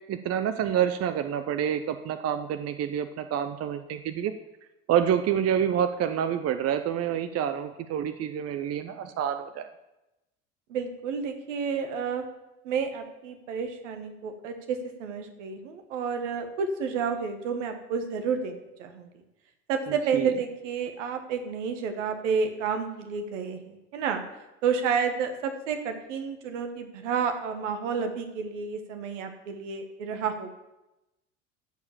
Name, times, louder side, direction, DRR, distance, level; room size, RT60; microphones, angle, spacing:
voice 1, 0.1-4.3 4.9-9.7 20.1-20.3, right 9 dB, 40° right, 10 dB, 0.8 m, -27 dB
voice 2, 10.7-12.2 12.6-19.1 19.7-24.2 24.6-30.5, right 6 dB, 75° right, 7 dB, 1.5 m, -30 dB
13.5 x 4.8 x 7.3 m, 0.97 s
hypercardioid pair, 65°, 38 cm